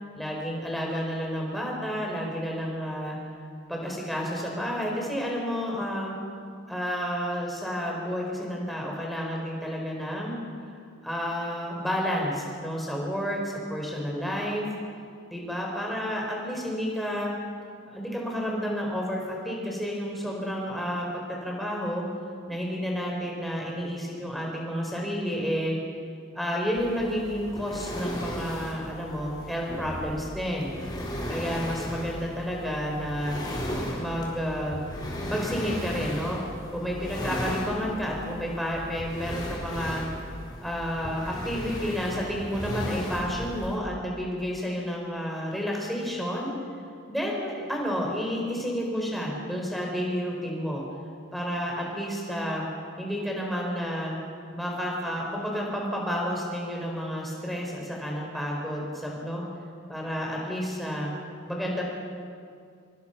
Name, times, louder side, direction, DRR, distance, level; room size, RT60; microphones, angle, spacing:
voice 1, 0.1-3.2 3.7-6.1 6.7-10.4 11.0-14.7 15.3-17.3 17.9-22.0 22.5-25.8 26.3-30.7 31.3-33.4 33.9-34.8 35.3-36.4 36.7-40.0 40.6-46.5 47.1-50.8 51.3-52.6 53.0-54.1 54.5-59.4 59.9-61.1 61.5-61.8, equal, ahead, -2 dB, 4.9 m, -30 dB
sound 1, 26.8-43.8, equal, 20° left, 4.2 m, -36 dB
26.5 x 23.0 x 5.9 m, 2.3 s
head